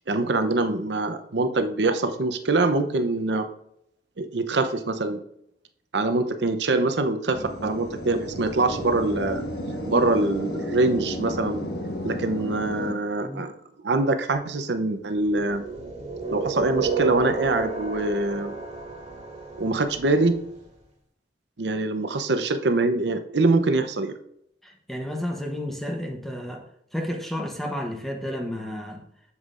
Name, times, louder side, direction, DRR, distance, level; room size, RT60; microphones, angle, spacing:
voice 1, 0.1-3.5 4.2-5.2 5.9-9.4 9.9-11.6 12.0-13.5 13.8-15.6 16.3-18.5 19.6-20.3 21.6-24.1, right 2 dB, 80° right, 8 dB, 0.8 m, -24 dB
sound 1, 7.3-12.9, equal, 65° left, 1.3 m, -32 dB
sound 2, 15.3-20.3, right 4 dB, 35° right, 1.9 m, -32 dB
voice 2, 24.6-26.6 26.9-29.1, equal, ahead, 1 dB, 0.9 m, -31 dB
8.1 x 7.2 x 2.5 m, 0.75 s
head